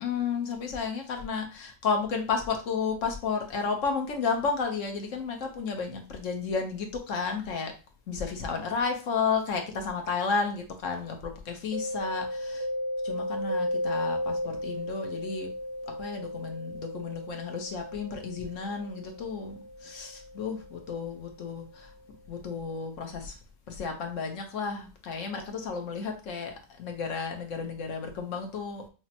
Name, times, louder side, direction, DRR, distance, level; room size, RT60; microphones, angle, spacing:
voice 1, 0.0-7.7 8.1-12.7 13.0-15.5 15.8-21.9 22.3-23.4 23.7-28.9, left 5 dB, 60° left, 1.0 m, -32 dB
Mallet percussion, 11.7-21.3, left 1 dB, 75° right, 1.4 m, -35 dB
6.0 x 2.1 x 2.8 m
omnidirectional pair, 1.7 m